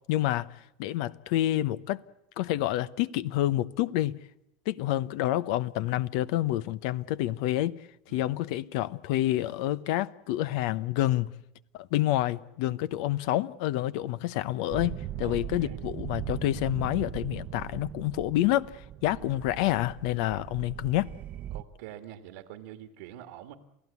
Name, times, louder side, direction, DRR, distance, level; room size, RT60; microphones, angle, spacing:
voice 1, 0.1-0.5 0.8-2.0 2.4-4.2 4.7-7.8 8.1-11.3 11.7-21.1, left 14 dB, 70° left, 0.8 m, -28 dB
sound 1, 14.7-21.6, right 12 dB, 45° right, 0.8 m, -39 dB
voice 2, 15.2-15.8 19.2-19.3 20.5-20.6 21.5-23.5, right 12 dB, 80° right, 1.8 m, -46 dB
28.0 x 16.0 x 8.4 m
supercardioid pair, 115°, 4 cm